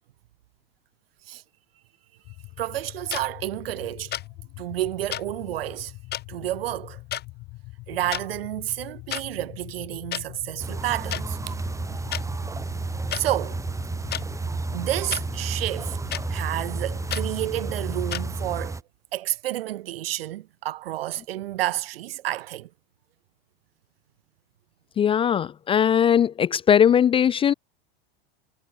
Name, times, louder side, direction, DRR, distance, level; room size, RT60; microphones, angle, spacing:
sound 1, 2.2-18.7, left 22 dB, 50° left, 5.3 m, -43 dB
voice 1, 2.6-4.1 4.6-5.9 6.3-7.0 7.9-11.5 13.1-13.6 14.7-16.0 16.3-18.8 19.1-22.7, right 14 dB, 85° right, 2.3 m, -30 dB
sound 2, 3.1-3.2 4.1-4.3 5.1-5.2 6.1-6.2 7.1-7.3 8.0-8.2 9.1-9.2 10.1-10.2 11.1-11.2 12.1-12.2 13.1-13.2 14.1-14.2 15.1-15.2 16.1-16.2 17.1-17.2 18.1-18.2, left 12 dB, 35° left, 3.1 m, -30 dB
sound 3, 10.6-18.8, right 3 dB, 10° right, 1.9 m, -31 dB
voice 2, 25.0-27.5, left 8 dB, 20° left, 0.4 m, -19 dB
supercardioid pair, 120°, 29 cm